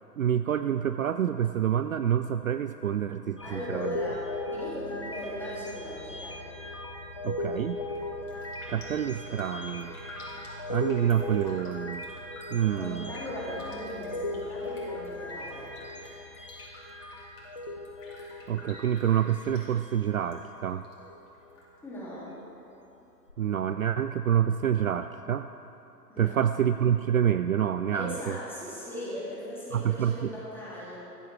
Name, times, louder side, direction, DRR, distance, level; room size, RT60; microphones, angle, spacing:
voice 1, 0.2-4.0 7.2-7.8 8.7-10.0 10.7-12.1 12.5-13.1 18.5-20.8 23.4-25.5 26.2-28.4 29.7-30.3, right 9 dB, 55° right, 10 dB, 0.5 m, -27 dB
sound 1, 3.4-20.6 21.0-21.3 23.3-23.4, left 1 dB, 20° left, 0.4 m, -38 dB
voice 2, 3.4-4.2 4.5-6.4 12.7-15.7 21.8-22.3 26.1-26.4 27.9-31.0, left 1 dB, 5° left, -8 dB, 3.5 m, -38 dB
Raindrop, 7.8-8.0 8.3-20.4 20.6-21.6 22.0-22.1, left 2 dB, 50° left, 4.0 m, -49 dB
15.0 x 14.0 x 4.7 m, 3.0 s
figure-of-eight pair, 120°, 49 cm